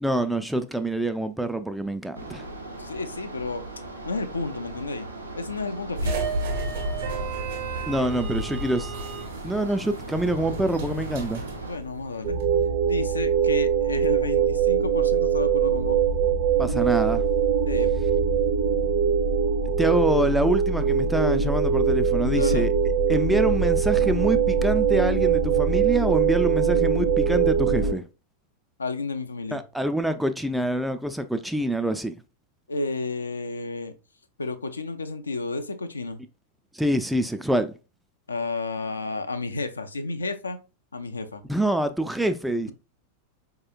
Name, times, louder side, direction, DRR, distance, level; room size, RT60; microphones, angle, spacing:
voice 1, 0.0-2.5 7.9-8.9 9.4-11.4 16.6-17.2 19.8-22.7 23.1-28.0 29.5-32.2 36.7-37.7 41.5-42.7, right 1 dB, 5° right, 0.3 m, -26 dB
sound 1, 2.1-11.8, right 2 dB, 80° right, 0.7 m, -39 dB
voice 2, 2.7-3.6 4.0-5.1 5.4-6.2 11.7-12.4 12.8-16.0 17.7-17.9 22.3-22.7 28.8-29.6 32.7-33.9 34.4-36.2 38.3-40.6 40.9-41.4, left 3 dB, 75° left, 0.4 m, -31 dB
sound 2, 6.0-12.5, right 2 dB, 60° right, 1.1 m, -32 dB
sound 3, 12.2-27.9, right 6 dB, 40° right, 0.8 m, -22 dB
4.7 x 2.8 x 2.4 m
figure-of-eight pair, 90°, 0 cm